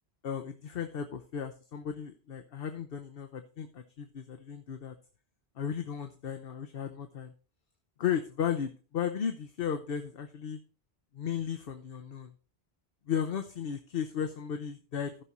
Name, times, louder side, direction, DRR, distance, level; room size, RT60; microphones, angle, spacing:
voice 1, 0.2-5.0 5.6-7.3 8.0-10.6 11.1-12.3 13.1-15.2, left 8 dB, 65° left, 6 dB, 0.9 m, -35 dB
14.5 x 6.1 x 4.1 m, 0.38 s
omnidirectional pair, 1.1 m